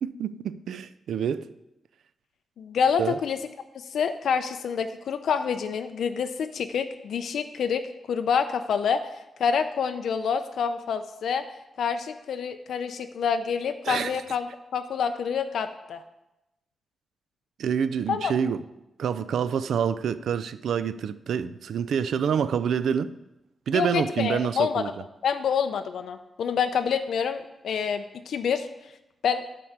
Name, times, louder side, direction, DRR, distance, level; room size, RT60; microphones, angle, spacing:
voice 1, 0.0-1.5 3.0-3.2 13.8-14.2 17.6-18.6 19.0-23.1 23.7-25.0, right 7 dB, 85° right, 0.4 m, -27 dB
voice 2, 2.6-3.4 3.9-7.8 8.1-9.0 9.4-11.4 11.8-14.5 14.7-16.0 18.1-18.3 23.7-24.8 25.2-28.7 29.2-29.4, left 6 dB, 80° left, 0.4 m, -27 dB
8.9 x 4.7 x 6.5 m
wide cardioid pair, 170°, 0 cm